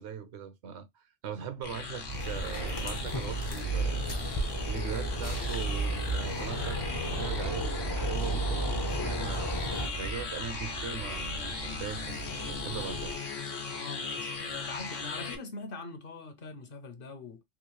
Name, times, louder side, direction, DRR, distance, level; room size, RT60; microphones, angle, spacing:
voice 1, 0.0-4.2 4.6-13.1, right 7 dB, 70° right, 0.9 m, -40 dB
sound 1, 1.6-15.4, left 4 dB, 90° left, 1.3 m, -38 dB
sound 2, 2.1-9.9, left 2 dB, 35° left, 0.4 m, -36 dB
sound 3, 2.1-13.2, right 4 dB, 50° right, 0.5 m, -36 dB
voice 2, 13.7-17.4, left 3 dB, 55° left, 0.8 m, -43 dB
3.6 x 2.7 x 3.0 m
omnidirectional pair, 1.3 m